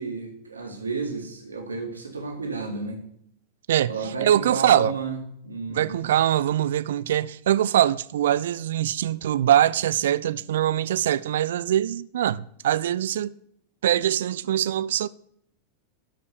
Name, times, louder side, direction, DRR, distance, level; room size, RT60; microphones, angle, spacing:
voice 1, 0.0-3.0 3.9-6.1, right 4 dB, 75° right, 2.2 m, -31 dB
voice 2, 3.7-4.9 5.7-13.3 13.8-15.1, right 11 dB, 60° right, 0.4 m, -23 dB
12.5 x 5.3 x 6.9 m
figure-of-eight pair, 90°, 0 cm